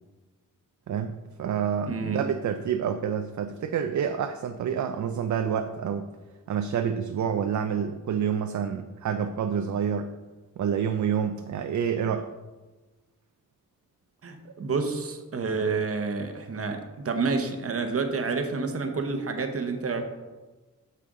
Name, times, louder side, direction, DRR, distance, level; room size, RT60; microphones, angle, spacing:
voice 1, 0.9-6.1 6.5-10.1 10.6-12.3, right 7 dB, 60° right, 8 dB, 0.5 m, -28 dB
voice 2, 1.9-2.2 14.2-20.0, right 4 dB, 45° right, 6 dB, 0.9 m, -29 dB
8.4 x 6.8 x 3.7 m, 1.2 s
wide cardioid pair, 160°, 33 cm